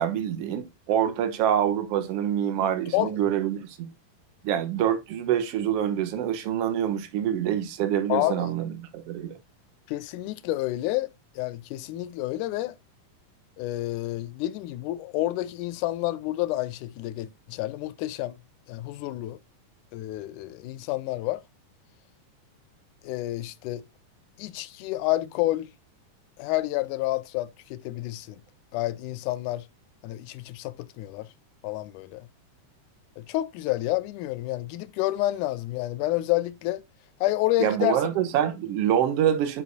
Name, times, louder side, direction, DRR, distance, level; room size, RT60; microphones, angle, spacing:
voice 1, 0.0-3.9 4.4-9.4 37.6-39.6, right 10 dB, 65° right, 1.7 m, -26 dB
voice 2, 8.1-8.5 9.9-11.1 11.4-12.8 13.6-18.4 18.7-19.4 19.9-21.4 23.0-23.8 24.4-25.7 26.4-28.4 28.7-29.7 30.0-31.3 31.6-32.3 33.2-36.8 37.2-38.0, left 16 dB, 80° left, 1.9 m, -29 dB
8.0 x 5.4 x 2.7 m
omnidirectional pair, 3.8 m